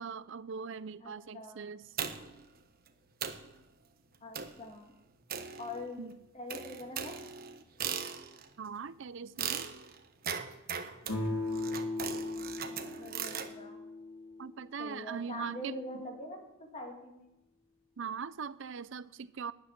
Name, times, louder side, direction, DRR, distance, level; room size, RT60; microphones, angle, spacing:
voice 1, 0.0-1.9 6.0-6.2 8.6-9.8 14.4-16.0 18.0-19.5, right 6 dB, 65° right, 0.6 m, -41 dB
voice 2, 1.0-1.7 4.2-4.9 5.6-6.0 6.3-7.1 12.3-13.8 14.8-17.3, left 1 dB, 30° left, 1.9 m, -44 dB
sound 1, 2.0-2.4 2.9-3.0 3.2-3.5 4.3-4.7 5.3-6.0 6.5-8.5 9.4-13.5, right 7 dB, 45° right, 1.1 m, -39 dB
sound 2, 11.0-14.7, left 2 dB, 90° left, 3.9 m, -37 dB
12.5 x 8.8 x 9.6 m
head